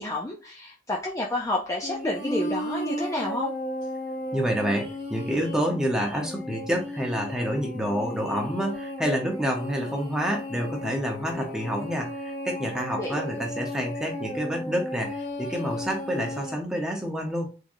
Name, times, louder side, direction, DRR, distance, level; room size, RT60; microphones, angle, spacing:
voice 1, 0.0-3.5 13.0-13.2, left 1 dB, 15° left, -1 dB, 0.5 m, -30 dB
sound 1, 1.8-16.6, left 1 dB, 45° left, 1.7 m, -34 dB
voice 2, 4.3-17.5, equal, 5° right, 0 dB, 0.9 m, -28 dB
3.7 x 3.2 x 2.6 m, 0.34 s
head